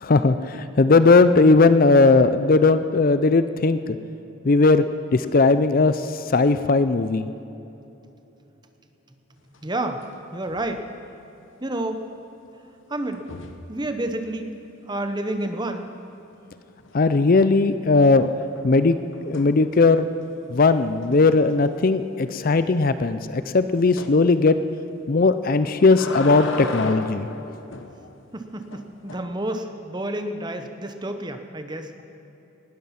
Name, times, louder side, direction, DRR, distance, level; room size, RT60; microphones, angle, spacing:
voice 1, 0.0-4.0 4.4-4.8 5.1-6.0 6.3-7.3 16.9-18.3 18.6-19.0 19.2-20.1 20.5-24.6 25.1-27.3, left 3 dB, 40° left, 12 dB, 0.5 m, -18 dB
sound 1, 9.5-10.2 10.4-10.8 13.1-13.7 16.8-17.3 17.7-20.1 20.6-20.7 21.0-21.1 21.5-21.6 24.0-24.2 25.4-27.9 28.7-29.2, left 3 dB, 60° left, 1.1 m, -35 dB
voice 2, 9.6-10.0 10.3-10.8 11.6-12.0 12.9-13.2 13.7-14.6 14.9-15.9 28.3-31.9, right 1 dB, 20° right, 7 dB, 0.9 m, -29 dB
19.0 x 13.0 x 5.9 m, 3.0 s
head